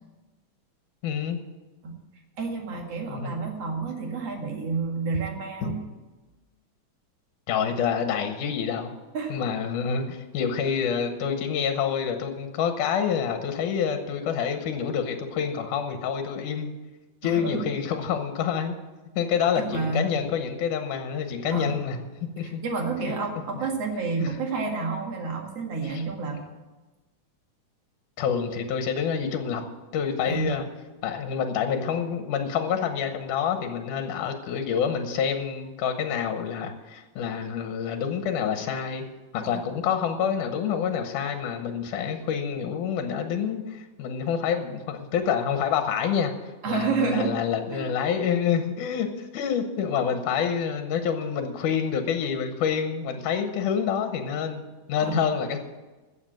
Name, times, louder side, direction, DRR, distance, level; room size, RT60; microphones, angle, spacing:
voice 1, 1.0-1.4 3.1-3.3 5.6-5.8 7.5-8.9 9.3-16.7 17.2-18.8 19.2-22.0 22.4-22.6 23.0-23.1 24.2-24.3 25.9-26.0 28.2-29.6 29.9-30.6 31.0-39.0 39.3-46.3 46.7-54.6 54.9-55.6, left 7 dB, 80° left, 6 dB, 2.6 m, -27 dB
voice 2, 2.4-5.8 9.1-9.3 17.2-17.6 19.6-20.2 21.5-21.8 22.4-26.4 30.3-30.5 39.4-39.6 46.6-47.4 47.7-47.9 55.0-55.3, right 4 dB, 55° right, 2 dB, 2.8 m, -29 dB
15.0 x 7.4 x 7.7 m, 1.2 s
omnidirectional pair, 3.5 m